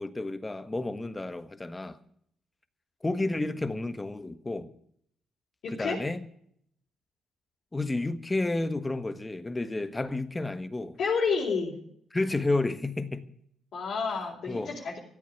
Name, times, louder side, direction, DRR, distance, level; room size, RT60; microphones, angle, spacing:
voice 1, 0.0-2.0 3.0-4.7 5.7-6.2 7.7-11.0 12.1-13.3 14.5-14.7, left 2 dB, 20° left, 1.4 m, -31 dB
voice 2, 5.6-6.0 11.0-11.7 13.7-15.0, left 5 dB, 65° left, 4.0 m, -29 dB
15.0 x 8.5 x 9.2 m
supercardioid pair, 70°, 0 cm